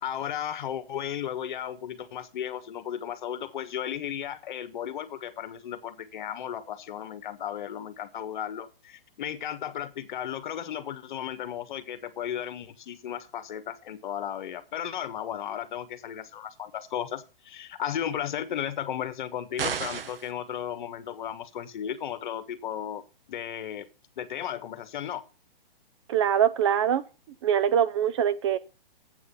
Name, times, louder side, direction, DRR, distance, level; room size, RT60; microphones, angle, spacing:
voice 1, 0.0-23.9 24.2-25.2, left 10 dB, 55° left, 12 dB, 1.4 m, -35 dB
sound 1, 19.6-20.3, right 6 dB, 75° right, 1.3 m, -31 dB
voice 2, 26.1-27.0 27.4-28.6, right 9 dB, 30° right, 13 dB, 0.5 m, -23 dB
8.2 x 6.4 x 7.0 m, 0.32 s
hypercardioid pair, 140°, 29 cm